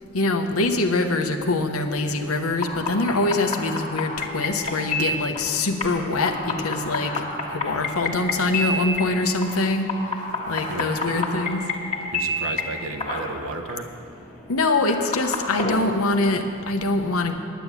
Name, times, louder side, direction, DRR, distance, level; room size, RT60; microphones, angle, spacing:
voice 1, 0.1-7.2 7.5-9.9 10.5-11.6 14.5-17.3, left 2 dB, 85° left, 6 dB, 1.0 m, -24 dB
sound 1, 2.5-15.8, left 2 dB, 30° left, 1.6 m, -30 dB
voice 2, 10.7-11.2 12.1-13.9, right 3 dB, 75° right, 3 dB, 0.9 m, -33 dB
10.5 x 9.3 x 8.3 m, 2.5 s
head